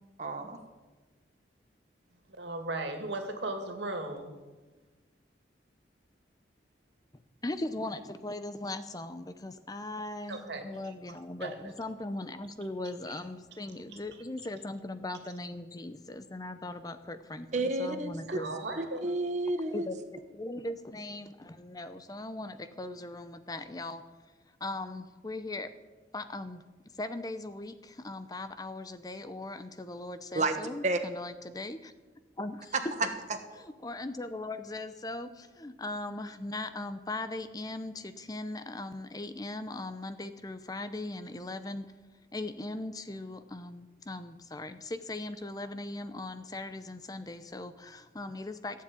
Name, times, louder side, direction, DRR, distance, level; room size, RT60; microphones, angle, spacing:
voice 1, 0.2-0.6 17.5-18.1 18.8-19.9 30.3-30.6 30.8-31.0 32.7-33.1, right 2 dB, 40° right, 5 dB, 1.2 m, -30 dB
voice 2, 2.4-4.3 10.3-10.8 11.4-11.7 13.1-13.2 18.3-19.1, right 2 dB, 75° right, 5 dB, 2.3 m, -37 dB
voice 3, 7.4-18.6 19.7-24.0 24.6-25.7 26.1-26.6 27.0-31.9 32.4-32.7 33.8-41.9 42.3-48.8, left 2 dB, 20° left, 11 dB, 0.6 m, -39 dB
15.5 x 7.5 x 8.9 m, 1.2 s
head